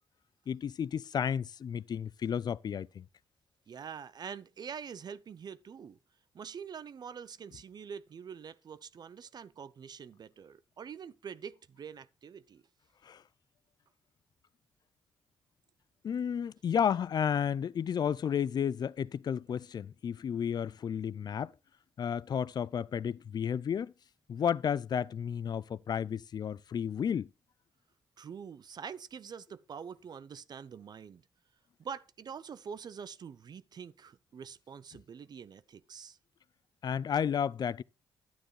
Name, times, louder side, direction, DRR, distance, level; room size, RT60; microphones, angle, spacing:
voice 1, 0.5-3.0 13.0-13.2 16.0-21.5 22.0-23.9 24.3-27.3 36.8-37.8, left 8 dB, 50° left, 0.4 m, -32 dB
voice 2, 3.7-6.0 6.3-12.6 28.2-31.2 31.8-36.2, right 7 dB, 55° right, 0.5 m, -45 dB
10.0 x 9.1 x 3.2 m
supercardioid pair, 60°, 9 cm